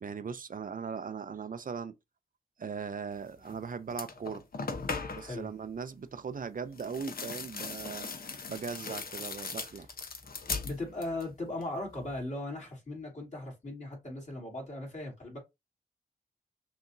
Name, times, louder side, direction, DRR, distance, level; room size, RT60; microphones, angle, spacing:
voice 1, 0.0-1.9 2.6-4.4 5.1-9.9, right 6 dB, 55° right, 0.5 m, -39 dB
sound 1, 3.4-3.6 3.9-5.4 6.7-11.3 11.6-12.2, left 4 dB, 65° left, 0.9 m, -39 dB
voice 2, 10.6-15.4, left 2 dB, 45° left, 2.9 m, -38 dB
5.8 x 2.8 x 2.7 m
cardioid pair, 55°, 16 cm